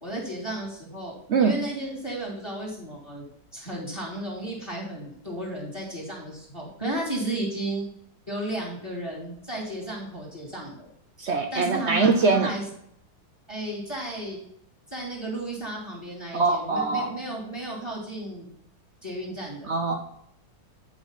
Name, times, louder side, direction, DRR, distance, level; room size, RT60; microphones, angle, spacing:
voice 1, 0.0-1.1 1.4-3.2 3.5-7.8 8.3-10.9 11.5-12.6 13.5-14.4 14.9-18.5 19.0-19.7, right 1 dB, 15° left, -3 dB, 2.3 m, -33 dB
voice 2, 11.2-12.5 16.3-17.1 19.7-19.9, right 4 dB, 60° right, 4 dB, 0.7 m, -22 dB
9.5 x 5.0 x 4.1 m, 0.76 s
omnidirectional pair, 2.0 m